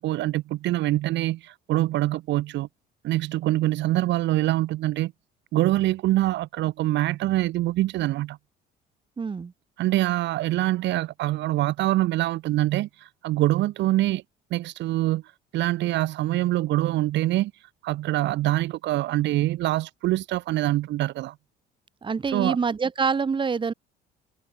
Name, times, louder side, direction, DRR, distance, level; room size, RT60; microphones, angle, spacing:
voice 1, 0.0-2.7 3.0-5.1 5.5-8.4 9.8-12.9 13.2-14.2 14.5-15.2 15.5-17.5 17.8-21.3 22.3-22.6, right 16 dB, 70° right, 1.7 m, -24 dB
voice 2, 9.2-9.5 22.0-23.7, right 5 dB, 25° right, 1.9 m, -26 dB
cardioid pair, 115°, 19 cm